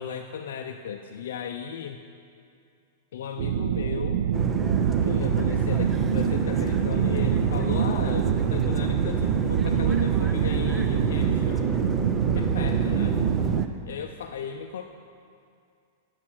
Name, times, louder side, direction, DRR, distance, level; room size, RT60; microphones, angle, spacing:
voice 1, 0.0-2.0 3.1-4.2 5.0-11.7 12.3-13.2 13.9-14.8, left 8 dB, 80° left, 4 dB, 0.4 m, -36 dB
sound 1, 3.4-13.6, right 9 dB, 75° right, 0.3 m, -25 dB
sound 2, 4.3-13.7, right 4 dB, 15° right, 0.5 m, -30 dB
8.5 x 5.8 x 6.2 m, 2.4 s
supercardioid pair, 140°, 0 cm